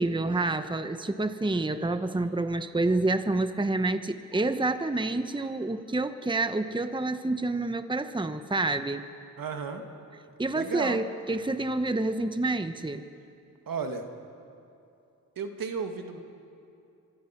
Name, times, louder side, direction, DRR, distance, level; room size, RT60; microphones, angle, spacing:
voice 1, 0.0-9.0 10.4-13.0, right 2 dB, 15° right, 9 dB, 1.1 m, -28 dB
voice 2, 9.4-9.8 10.5-11.0 13.7-14.0 15.4-16.2, right 5 dB, 75° right, 5 dB, 2.2 m, -33 dB
24.5 x 23.0 x 6.0 m, 2.6 s
cardioid pair, 65°, 35 cm